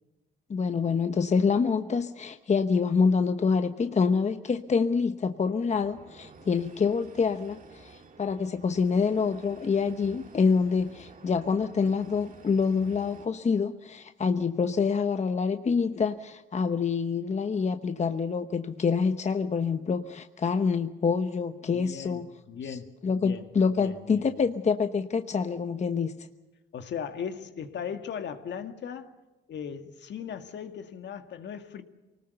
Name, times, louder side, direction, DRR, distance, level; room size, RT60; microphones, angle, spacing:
voice 1, 0.5-22.3 22.7-22.8 23.0-26.1, left 5 dB, 35° left, 1.0 m, -26 dB
sound 1, 5.7-13.3, right 4 dB, 40° right, 2.5 m, -52 dB
voice 2, 21.6-22.2 22.5-23.5 23.8-24.4 26.7-29.1 29.5-31.8, left 7 dB, 65° left, 2.0 m, -38 dB
24.5 x 19.5 x 6.8 m
cardioid pair, 90°, 20 cm